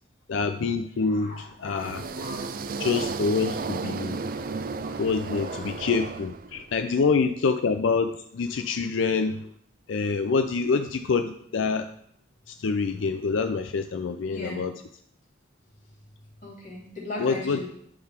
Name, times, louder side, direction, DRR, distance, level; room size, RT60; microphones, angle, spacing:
voice 1, 0.3-2.1 2.8-4.2 5.0-9.5 9.9-11.9 12.5-14.7 17.2-17.7, left 4 dB, 80° left, 8 dB, 0.4 m, -26 dB
voice 2, 1.1-2.8 4.8-5.0 5.5-5.6 14.3-14.6 16.4-17.7, left 2 dB, 40° left, -5 dB, 2.9 m, -39 dB
sound 1, 1.6-6.8, right 4 dB, 45° right, 0.4 m, -33 dB
11.5 x 4.0 x 4.4 m, 0.69 s
head